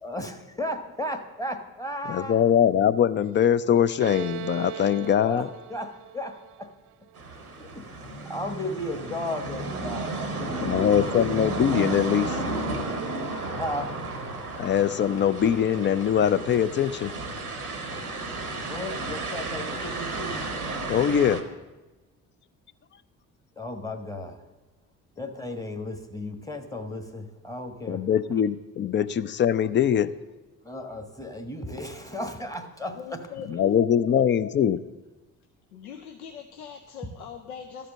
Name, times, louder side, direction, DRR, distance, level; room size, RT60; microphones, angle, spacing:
voice 1, 0.0-2.5 5.2-6.7 7.6-11.2 13.5-13.9 18.5-20.5 23.6-24.5 25.2-28.0 30.6-33.2, left 1 dB, 10° left, 6 dB, 1.3 m, -35 dB
voice 2, 2.1-5.5 10.6-12.4 14.6-17.1 20.9-21.4 27.9-30.1 33.5-34.8, left 9 dB, 30° left, 13 dB, 0.4 m, -22 dB
Bowed string instrument, 4.0-7.6, right 13 dB, 65° right, 0.5 m, -39 dB
sound 1, 7.2-21.4, right 2 dB, 90° right, 0.8 m, -33 dB
sound 2, 12.3-20.2, left 4 dB, 45° left, 1.5 m, -51 dB
voice 3, 32.9-34.5 35.7-37.9, left 7 dB, 80° left, 6 dB, 0.6 m, -40 dB
12.5 x 5.0 x 7.3 m, 1.1 s
figure-of-eight pair, 45°, 43 cm